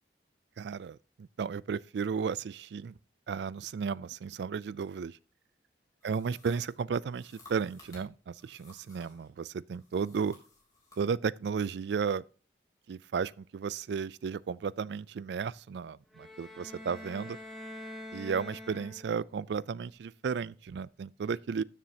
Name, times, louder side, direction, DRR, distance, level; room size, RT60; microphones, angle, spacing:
voice 1, 0.6-3.0 3.3-5.2 6.0-10.4 11.0-12.2 12.9-17.4 18.1-21.6, right 6 dB, 70° right, 0.3 m, -34 dB
sound 1, 6.0-9.3 9.7-11.0, left 2 dB, 20° left, 3.3 m, -57 dB
sound 2, 16.1-19.3, left 1 dB, ahead, 1.6 m, -45 dB
13.0 x 7.2 x 2.8 m
head